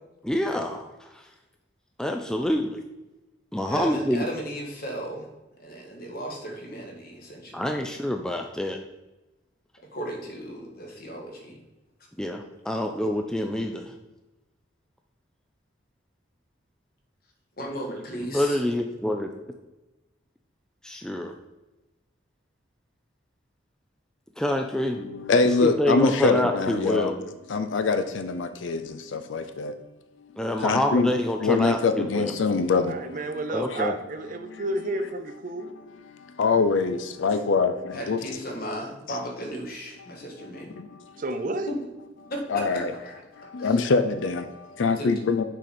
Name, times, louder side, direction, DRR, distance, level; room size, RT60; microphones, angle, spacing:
voice 1, 0.2-1.2 2.0-2.8 3.5-4.3 7.5-8.8 12.2-13.9 18.3-19.3 20.8-21.3 24.4-25.1 25.6-27.3 30.4-32.3 33.5-33.9, left 1 dB, 5° left, 0.3 m, -26 dB
voice 2, 3.7-5.3 5.6-7.8 9.9-11.6 17.6-18.6 37.9-40.7 41.7-41.8 42.3-43.2 43.6-43.8 44.9-45.1, equal, 50° left, 1.5 m, -35 dB
voice 3, 25.0-27.1 27.5-29.8 30.6-31.1 31.4-33.4 33.7-33.8 34.4-34.6 35.6-38.2 40.1-40.2 40.8-41.1 42.5-42.9 43.4-45.4, left 4 dB, 75° left, 0.4 m, -24 dB
voice 4, 32.9-35.7 41.2-41.7, right 2 dB, 45° right, 0.5 m, -31 dB
6.4 x 4.9 x 4.3 m
head